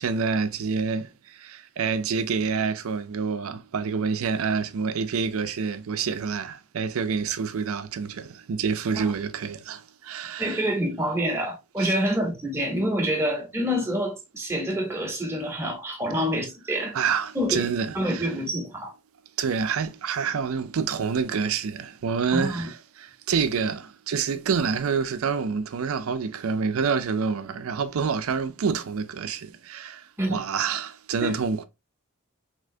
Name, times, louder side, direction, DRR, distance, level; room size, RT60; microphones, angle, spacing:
voice 1, 0.0-10.6 11.8-11.9 16.9-18.3 19.4-30.0 30.3-31.6, right 6 dB, 75° right, 0.4 m, -27 dB
voice 2, 10.4-16.9 17.3-17.6 17.9-18.9 22.3-22.7 30.2-30.4 31.2-31.4, equal, 10° right, 0.8 m, -27 dB
3.3 x 2.8 x 2.6 m
head